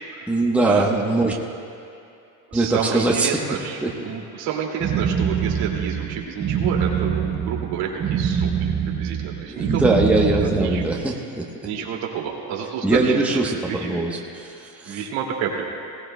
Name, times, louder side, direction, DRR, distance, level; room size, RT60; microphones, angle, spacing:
voice 1, 0.3-1.4 2.5-3.4 3.8-3.9 9.5-11.7 12.8-15.0, right 2 dB, 5° right, -1 dB, 1.0 m, -22 dB
voice 2, 2.5-3.8 4.0-9.8 10.4-10.8 11.6-13.2 13.4-14.0 14.8-15.7, right 7 dB, 75° right, -1 dB, 2.4 m, -29 dB
sound 1, 4.8-11.1, right 7 dB, 30° right, 0.7 m, -24 dB
20.5 x 17.0 x 2.2 m, 2.6 s
cardioid pair, 130°, 41 cm